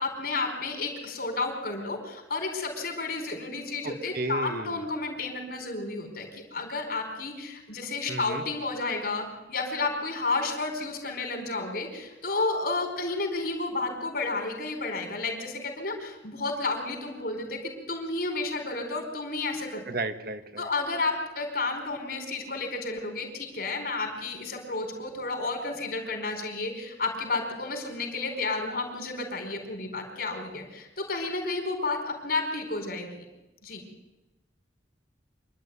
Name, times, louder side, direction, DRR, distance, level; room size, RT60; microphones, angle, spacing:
voice 1, 0.0-19.8 20.6-33.2 33.6-33.8, left 3 dB, 55° left, 4 dB, 4.7 m, -31 dB
voice 2, 3.8-4.8 8.1-8.4 19.9-20.7, right 2 dB, 55° right, 9 dB, 1.3 m, -34 dB
26.0 x 11.5 x 9.6 m, 1.0 s
head